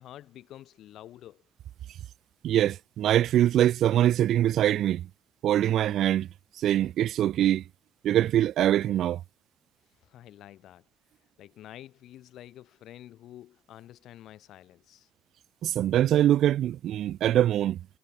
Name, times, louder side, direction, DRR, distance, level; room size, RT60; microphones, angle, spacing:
voice 1, 0.0-1.4 10.0-10.8 11.4-15.1, left 13 dB, 80° left, 3.8 m, -48 dB
voice 2, 2.4-5.1 5.4-6.3 6.6-7.6 8.0-9.2 15.6-17.9, right 12 dB, 75° right, 2.0 m, -23 dB
cardioid pair, 90°, 0 cm